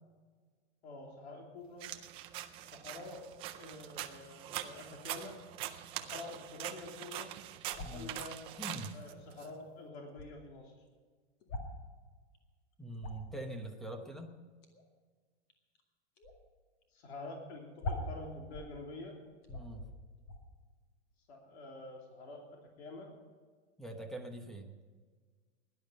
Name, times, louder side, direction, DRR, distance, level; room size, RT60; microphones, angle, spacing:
voice 1, 0.8-1.9 2.7-3.2 3.6-5.4 5.9-7.3 7.9-8.4 8.9-10.7 16.9-19.1 21.3-23.1, left 2 dB, 70° left, 0 dB, 3.4 m, -47 dB
sound 1, 1.8-9.5, right 13 dB, 15° right, 0.4 m, -43 dB
sound 2, 7.7-8.1 9.3-9.4 9.6-9.7 9.9-10.3 11.4-11.8 12.3-12.4 12.7-13.4 14.6-14.8 15.5-15.8 16.2-16.4 16.8-16.9 17.1-17.2 17.8-18.8 19.1-19.2 19.4-19.9 20.2-20.4, left 2 dB, 35° left, 2.2 m, -41 dB
voice 2, 7.8-8.1 8.6-8.9 12.8-14.4 19.5-19.9 23.8-24.8, right 1 dB, ahead, 5 dB, 0.9 m, -43 dB
17.5 x 11.0 x 5.4 m, 1.5 s
supercardioid pair, 155°, 34 cm